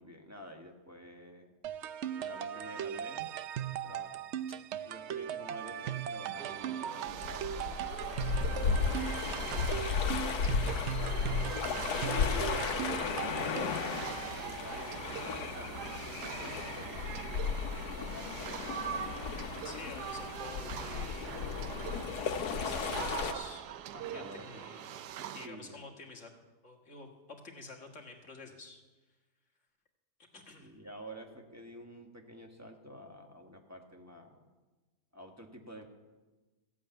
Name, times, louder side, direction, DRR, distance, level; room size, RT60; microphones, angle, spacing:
voice 1, 0.0-1.5 2.2-3.2 3.8-4.6 4.8-7.8 8.9-9.5 10.2-11.4 11.6-17.2 17.9-19.3 22.2-23.4 23.9-24.6 25.4-25.8 30.6-34.5 35.1-35.8, equal, 10° right, 2 dB, 1.3 m, -49 dB
sound 1, 1.6-13.9, right 10 dB, 65° right, 0.7 m, -39 dB
sound 2, 6.4-25.5, right 10 dB, 85° right, 1.2 m, -43 dB
sound 3, 7.1-23.3, left 6 dB, 80° left, 1.4 m, -35 dB
voice 2, 9.1-9.6 19.6-21.4 22.3-23.6 24.1-24.9 25.3-26.3 26.6-28.8 30.3-30.8, left 3 dB, 50° left, 1 dB, 2.0 m, -49 dB
15.0 x 8.4 x 9.0 m, 1.2 s
omnidirectional pair, 1.7 m